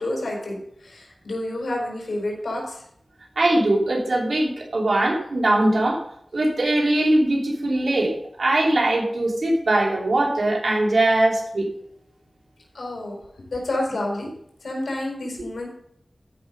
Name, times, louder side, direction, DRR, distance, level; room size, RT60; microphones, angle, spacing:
voice 1, 0.0-2.8 12.7-14.3 14.6-15.7, left 1 dB, 85° left, -1 dB, 4.4 m, -29 dB
voice 2, 3.4-6.0 6.3-11.7, right 1 dB, 70° right, -1 dB, 3.1 m, -21 dB
14.0 x 6.0 x 5.3 m, 0.71 s
wide cardioid pair, 55°, 0 cm